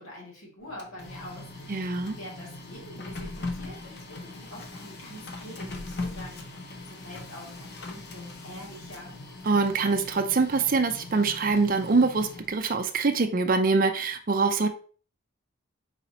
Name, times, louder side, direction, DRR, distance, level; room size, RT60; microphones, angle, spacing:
voice 1, 0.0-9.1, left 1 dB, 75° left, -3 dB, 1.8 m, -45 dB
Printer, 0.6-12.7, left 2 dB, 50° left, 0.7 m, -40 dB
voice 2, 1.7-2.1 9.5-14.7, right 4 dB, 40° right, 7 dB, 0.5 m, -24 dB
4.2 x 4.1 x 2.7 m, 0.41 s
head